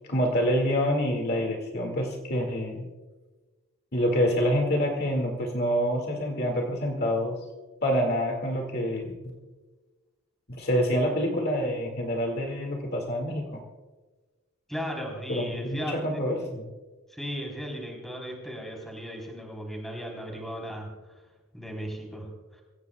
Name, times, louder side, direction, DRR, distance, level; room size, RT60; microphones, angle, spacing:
voice 1, 0.1-2.9 3.9-7.4 7.8-9.1 10.5-13.6 15.3-16.7, equal, 45° left, 2 dB, 2.0 m, -27 dB
voice 2, 14.7-16.0 17.1-20.9 21.5-22.6, equal, ahead, 0 dB, 3.5 m, -36 dB
24.5 x 16.5 x 2.3 m, 1.2 s
head